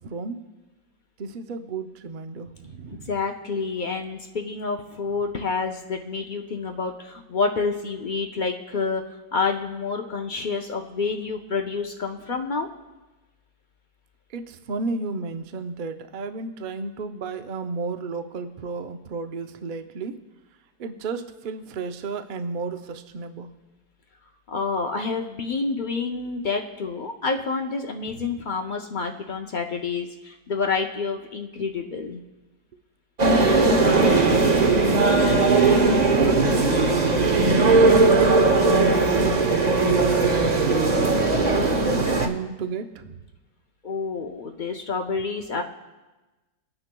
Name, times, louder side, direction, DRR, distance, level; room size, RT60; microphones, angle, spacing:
voice 1, 1.2-3.1 14.3-20.2 20.8-23.5 33.2-35.5 35.8-37.1 38.1-40.1 40.4-43.1, right 4 dB, 75° right, 7 dB, 0.4 m, -33 dB
voice 2, 3.1-9.0 9.3-12.7 24.5-32.2 43.8-45.6, left 4 dB, 85° left, 3 dB, 0.4 m, -28 dB
sound 1, 33.2-42.3, right 3 dB, 35° right, 0.7 m, -18 dB
24.5 x 9.7 x 2.2 m, 1.1 s
omnidirectional pair, 1.8 m